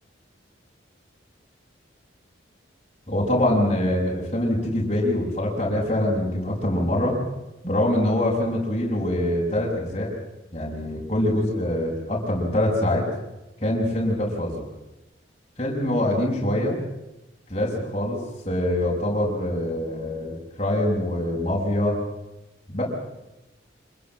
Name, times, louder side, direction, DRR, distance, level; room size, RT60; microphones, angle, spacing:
voice 1, 3.1-7.2 7.6-10.1 10.5-13.1 13.6-14.6 15.6-16.8 17.5-18.2 18.4-22.0 22.7-22.8, left 1 dB, 30° left, -5 dB, 6.4 m, -24 dB
27.0 x 21.5 x 7.4 m, 0.96 s
head